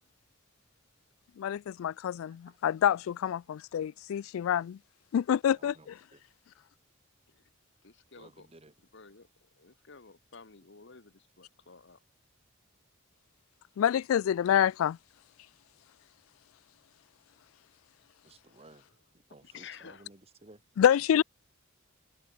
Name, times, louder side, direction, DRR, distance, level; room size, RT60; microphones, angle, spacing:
voice 1, 1.4-4.8 5.1-5.7 13.8-15.0 20.8-21.2, left 9 dB, 80° left, 0.3 m, -27 dB
voice 2, 5.5-6.2 8.2-8.7 18.2-18.9 19.3-20.6, right 2 dB, 30° right, 1.6 m, -56 dB
voice 3, 7.8-8.5 8.9-12.0 19.4-20.1, left 5 dB, 60° left, 1.4 m, -52 dB
head